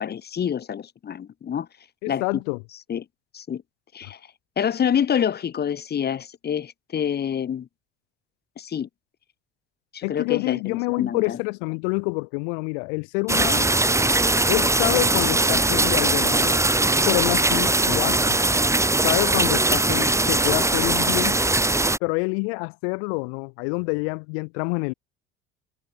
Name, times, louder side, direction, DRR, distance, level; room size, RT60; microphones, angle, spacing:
voice 1, 0.0-1.7 2.1-2.2 2.9-3.0 3.3-3.6 3.9-4.2 4.6-7.7 8.6-8.9 9.9-11.4, left 8 dB, 35° left, 0.8 m, -27 dB
voice 2, 2.0-2.6 10.0-13.7 14.5-16.6 17.1-18.4 19.0-21.4 22.0-24.9, left 39 dB, 80° left, 2.4 m, -27 dB
sound 1, 13.3-22.0, right 2 dB, 10° right, 1.5 m, -20 dB
supercardioid pair, 80°, 30 cm